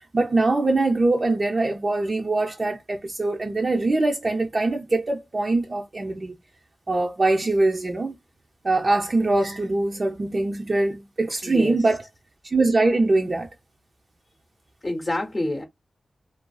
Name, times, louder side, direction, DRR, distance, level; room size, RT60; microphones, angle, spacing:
voice 1, 0.0-6.3 6.9-8.1 8.6-12.0 12.4-13.5, right 2 dB, 45° right, 0.4 m, -23 dB
voice 2, 11.4-11.8 14.8-15.6, left 1 dB, 35° left, 0.7 m, -27 dB
2.4 x 2.3 x 2.2 m
cardioid pair, 60°, 0 cm